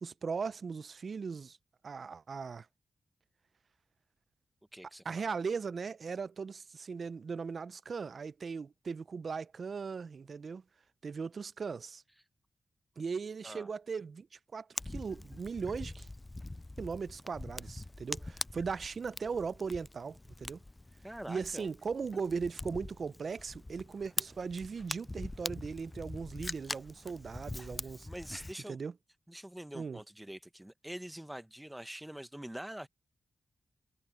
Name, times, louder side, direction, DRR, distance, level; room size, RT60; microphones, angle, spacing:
voice 1, 0.0-1.6 1.8-2.7 5.0-10.6 11.0-12.0 13.0-16.1 16.8-20.6 21.3-28.1 28.7-28.9 29.7-30.0, right 5 dB, 65° right, 0.6 m, -38 dB
voice 2, 4.7-5.2 13.4-13.7 21.0-21.7 27.2-27.4 28.0-28.8 29.3-32.9, right 1 dB, 10° right, 1.4 m, -45 dB
Fire, 14.8-28.5, left 2 dB, 25° left, 0.3 m, -43 dB
supercardioid pair, 40°, 0 cm